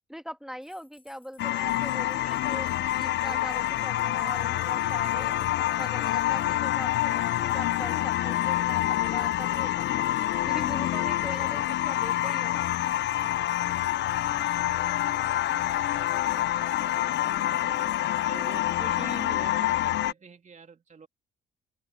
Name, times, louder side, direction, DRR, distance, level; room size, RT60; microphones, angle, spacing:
voice 1, 0.1-2.7 3.0-10.0 10.5-12.7, equal, ahead, 1.8 m, -41 dB
sound 1, 0.6-19.3, left 4 dB, 30° left, 6.6 m, -60 dB
sound 2, 1.4-20.1, left 13 dB, 65° left, 0.7 m, -27 dB
voice 2, 13.1-15.3 15.6-21.1, right 5 dB, 40° right, 2.8 m, -47 dB
hypercardioid pair, 55°, 19 cm